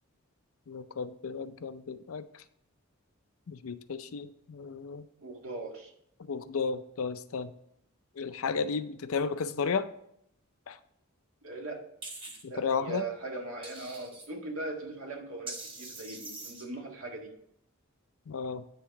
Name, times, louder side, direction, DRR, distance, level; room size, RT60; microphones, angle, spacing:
voice 1, 0.7-2.2 3.5-5.1 6.3-7.5 8.2-9.9 10.7-10.8 12.4-13.0 18.3-18.6, left 5 dB, 75° left, 12 dB, 0.5 m, -33 dB
voice 2, 5.2-5.9 11.4-11.8 12.5-17.3, right 2 dB, 75° right, 1 dB, 1.7 m, -39 dB
sound 1, 12.0-12.4 13.6-14.3 15.5-16.6, right 2 dB, 25° right, 1.6 m, -43 dB
9.4 x 3.7 x 5.7 m, 0.75 s
head